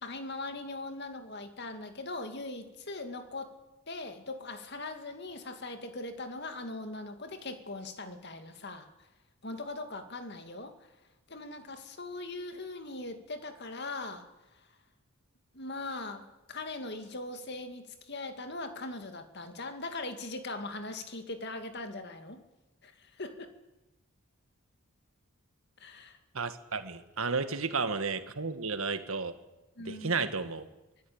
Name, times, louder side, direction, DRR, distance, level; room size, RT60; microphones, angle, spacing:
voice 1, 0.0-3.5 3.9-8.9 9.4-10.8 11.3-14.7 15.5-22.4 22.8-23.5 25.8-26.2 29.8-30.3, left 2 dB, 50° left, 7 dB, 2.3 m, -40 dB
voice 2, 26.3-29.4 29.9-30.7, right 4 dB, 80° right, 10 dB, 1.6 m, -32 dB
24.5 x 15.5 x 8.7 m, 1.0 s
head